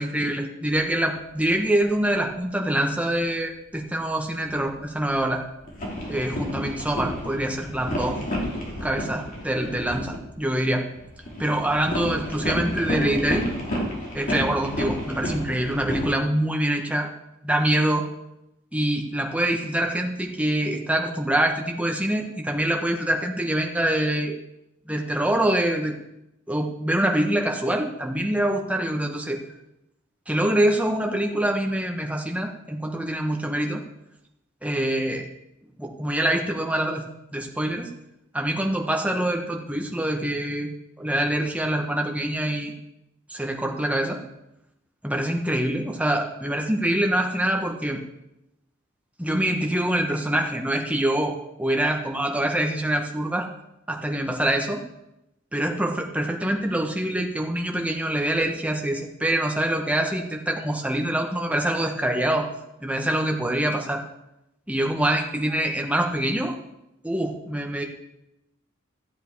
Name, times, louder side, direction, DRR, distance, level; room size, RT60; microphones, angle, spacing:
voice 1, 0.0-5.4 6.1-8.2 8.8-10.8 11.4-13.5 14.1-17.1 17.4-18.0 18.7-24.3 24.9-25.9 26.5-29.4 30.3-33.8 34.6-35.3 35.8-37.0 37.3-37.9 38.3-40.7 41.0-42.7 43.3-44.2 45.0-48.0 49.2-53.5 53.9-54.8 55.5-62.5 62.8-64.0 64.7-66.5 67.0-67.8, right 1 dB, 5° right, 2 dB, 1.4 m, -25 dB
sound 1, 0.7-1.0 1.5-2.3 2.7-3.2 4.3-10.6 10.9-16.1, equal, 40° left, 2.8 m, -31 dB
14.0 x 8.1 x 4.7 m, 0.87 s
head